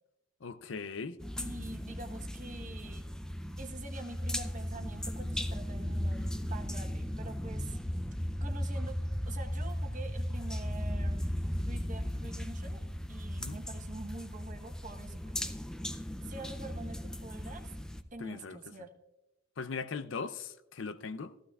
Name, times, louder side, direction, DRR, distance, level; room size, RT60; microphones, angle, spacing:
voice 1, 0.4-1.2 13.4-13.6 18.2-18.6 19.6-21.3, left 4 dB, 75° left, 0.6 m, -39 dB
sound 1, 1.2-18.0, equal, 5° left, 0.5 m, -36 dB
voice 2, 1.4-3.1 3.6-7.8 8.4-9.0 9.2-11.2 11.7-15.6 16.2-17.7 18.1-18.9, right 2 dB, 45° right, 1.1 m, -46 dB
15.0 x 14.5 x 2.4 m
head